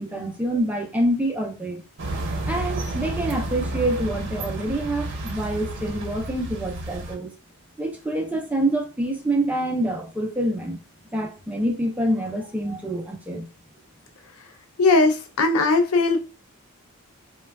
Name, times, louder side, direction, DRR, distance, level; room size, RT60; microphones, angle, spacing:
voice 1, 0.0-1.8 2.2-7.3 7.8-10.8 11.1-13.5, right 1 dB, 5° right, 0.4 m, -26 dB
sound 1, 2.0-7.2, right 1 dB, 55° right, 0.7 m, -31 dB
voice 2, 14.8-16.2, left 3 dB, 70° left, 0.4 m, -19 dB
3.1 x 2.2 x 2.2 m
head